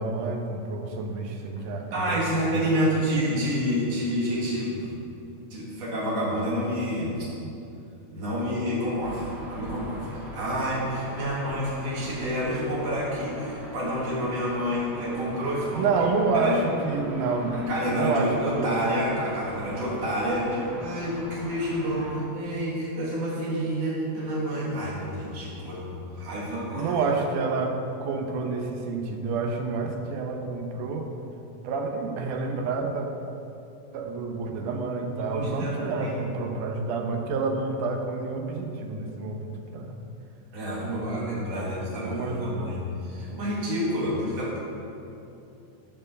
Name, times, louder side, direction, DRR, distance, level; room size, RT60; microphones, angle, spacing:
voice 1, 0.0-2.7 15.7-17.6 17.9-18.8 26.7-31.1 31.6-33.1 33.9-40.0 40.8-42.8, right 4 dB, 90° right, 3 dB, 2.4 m, -29 dB
voice 2, 1.9-4.9 5.5-7.3 8.1-15.9 16.3-16.6 17.5-27.0 35.2-36.2 40.5-44.6, equal, 60° right, -6 dB, 3.2 m, -28 dB
sound 1, 9.0-22.2, equal, ahead, 0.5 m, -42 dB
12.5 x 4.5 x 6.5 m, 2.8 s
omnidirectional pair, 3.5 m